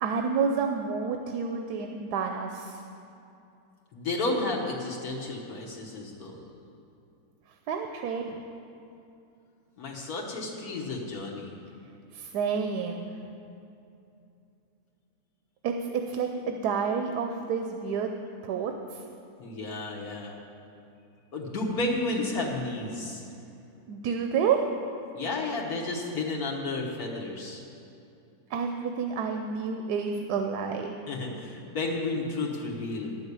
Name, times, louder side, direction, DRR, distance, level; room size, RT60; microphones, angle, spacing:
voice 1, 0.0-2.8 7.7-8.4 12.1-13.1 15.6-18.1 18.4-19.0 23.9-24.6 28.5-30.9, right 6 dB, 85° right, 4 dB, 1.2 m, -29 dB
voice 2, 3.9-6.4 9.8-11.5 19.4-20.3 21.3-23.2 25.1-27.6 31.1-33.2, left 2 dB, 70° left, -3 dB, 1.7 m, -32 dB
11.0 x 6.3 x 8.2 m, 2.7 s
omnidirectional pair, 1.7 m